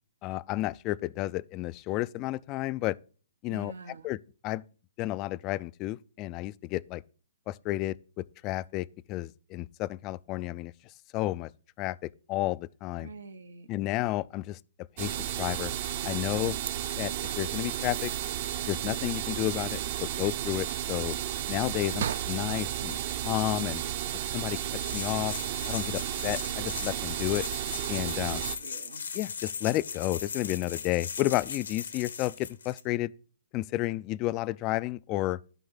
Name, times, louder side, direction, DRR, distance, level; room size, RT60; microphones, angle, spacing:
voice 1, 0.2-3.0 3.4-3.7 4.0-4.6 5.0-7.0 7.5-10.7 11.1-11.5 11.8-13.1 13.7-14.6 15.0-15.7 16.0-16.6 17.0-18.1 18.7-21.2 21.5-23.0 23.2-23.8 24.3-24.6 24.9-25.4 25.7-27.5 27.9-28.4 29.1-33.1 33.5-35.4, left 17 dB, 30° left, 0.3 m, -31 dB
voice 2, 3.5-4.1 13.0-13.7 21.9-22.1 28.3-29.1, right 4 dB, 85° right, 1.1 m, -45 dB
sound 1, 15.0-28.6, right 11 dB, 45° right, 0.8 m, -33 dB
sound 2, 16.4-16.7 17.8-18.4 21.1-21.5 22.0-24.2, right 9 dB, 60° right, 0.4 m, -39 dB
sound 3, 24.7-32.8, left 6 dB, 85° left, 1.1 m, -39 dB
12.0 x 5.3 x 3.8 m
hypercardioid pair, 145°, 0 cm